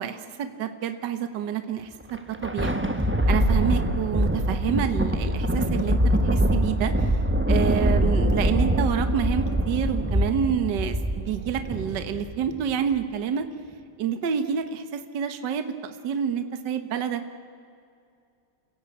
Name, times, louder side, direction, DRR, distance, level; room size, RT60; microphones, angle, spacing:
voice 1, 0.0-2.8 3.3-7.2 7.5-13.5 14.0-17.2, right 8 dB, 60° right, 9 dB, 1.7 m, -28 dB
Thunder, 2.0-12.7, equal, 10° right, 0.7 m, -24 dB
28.5 x 16.0 x 8.5 m, 2.4 s
omnidirectional pair, 2.2 m